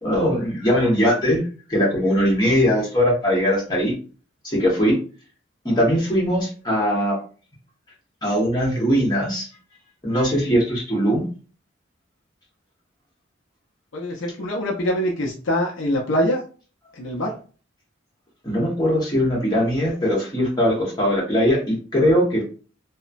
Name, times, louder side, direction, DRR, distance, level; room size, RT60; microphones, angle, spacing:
voice 1, 0.0-3.9 4.4-5.0 5.6-7.2 8.2-9.5 10.0-11.3 18.4-22.4, equal, 20° left, -4 dB, 1.1 m, -20 dB
voice 2, 13.9-16.4 16.9-17.3, equal, 65° left, 0 dB, 0.5 m, -24 dB
2.9 x 2.1 x 2.5 m, 0.38 s
head